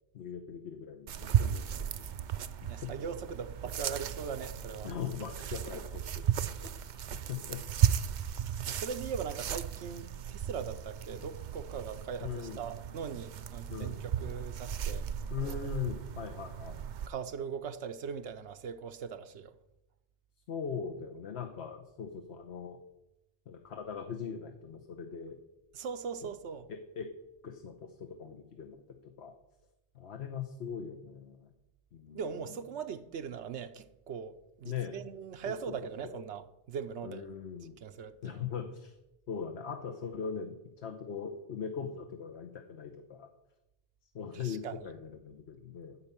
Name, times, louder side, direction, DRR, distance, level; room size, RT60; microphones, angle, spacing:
voice 1, 0.1-1.9 2.6-2.9 4.8-6.2 6.6-6.8 7.1-7.6 12.2-12.6 13.7-14.0 15.3-16.9 20.5-22.8 23.5-25.4 26.7-27.1 27.4-29.3 29.9-31.5 31.9-32.4 34.6-35.0 35.5-35.7 36.0-36.2 37.0-37.7 38.2-38.9 39.3-43.3 44.1-46.0, left 7 dB, 75° left, 1.2 m, -40 dB
sound 1, 1.1-17.1, right 9 dB, 55° right, 0.5 m, -35 dB
voice 2, 2.7-4.9 5.5-5.6 8.7-15.1 15.4-15.9 17.1-19.5 25.7-26.7 32.1-37.2 37.8-38.4 44.4-44.9, right 6 dB, 90° right, 1.0 m, -40 dB
12.5 x 5.5 x 8.5 m
omnidirectional pair, 1.1 m